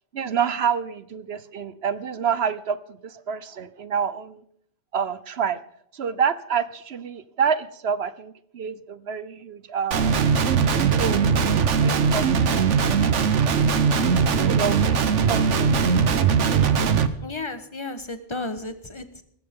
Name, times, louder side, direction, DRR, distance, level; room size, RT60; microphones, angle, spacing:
voice 1, 0.1-4.4 4.9-5.6 5.9-10.2 10.9-11.2 11.8-12.8 14.3-16.0, right 7 dB, 65° right, 15 dB, 1.1 m, -28 dB
Guitar, 9.9-17.1, right 6 dB, 80° right, 1.3 m, -20 dB
voice 2, 17.2-19.2, left 2 dB, 25° left, 10 dB, 1.4 m, -33 dB
19.0 x 15.5 x 3.8 m, 0.67 s
omnidirectional pair, 1.2 m